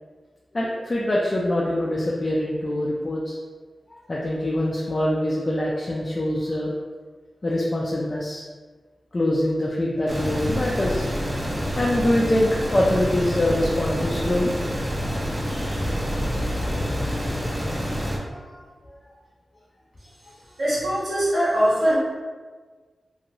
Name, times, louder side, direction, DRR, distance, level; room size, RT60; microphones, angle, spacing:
voice 1, 0.5-3.4 3.9-6.7 7.4-8.4 9.1-11.1 11.7-14.5 15.2-15.8 18.1-18.9, left 1 dB, 45° left, -4 dB, 0.4 m, -24 dB
sound 1, 10.1-18.2, equal, 20° right, 0.6 m, -27 dB
voice 2, 20.6-22.0, equal, 80° right, -10 dB, 1.5 m, -21 dB
2.9 x 2.2 x 2.5 m, 1.4 s
cardioid pair, 45°, 0 cm